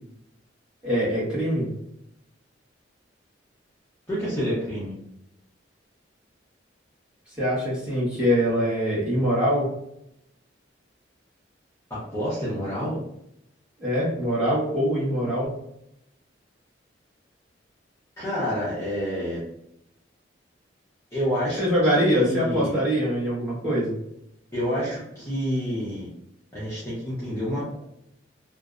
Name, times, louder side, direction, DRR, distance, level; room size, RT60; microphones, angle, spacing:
voice 1, 0.8-1.7 7.4-9.7 13.8-15.5 21.6-23.9, equal, 5° right, -9 dB, 1.1 m, -23 dB
voice 2, 4.1-4.9 11.9-13.0 18.2-19.4 21.1-21.6 21.9-22.7 24.5-26.1 26.5-27.8, equal, 15° left, -10 dB, 0.7 m, -28 dB
2.6 x 2.0 x 2.3 m, 0.79 s
head